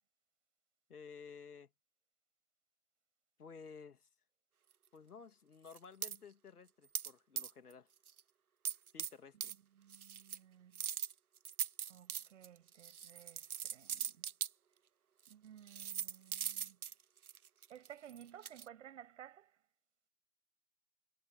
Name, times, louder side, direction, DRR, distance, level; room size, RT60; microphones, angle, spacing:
voice 1, 0.9-1.7 3.4-4.1 4.9-7.9 8.9-9.5, left 5 dB, 70° left, 2.8 m, -54 dB
sound 1, 5.7-6.2 6.9-7.1 7.4-7.7 8.1-8.2 8.7-9.1 9.4-9.5 9.9-10.4 10.7-14.5 15.3-15.4 15.7-18.7, right 8 dB, 65° right, 1.1 m, -41 dB
voice 2, 9.5-10.9 11.9-14.3 15.3-16.8 17.7-19.6, right 10 dB, 50° right, 7.6 m, -57 dB
figure-of-eight pair, 135°, 47 cm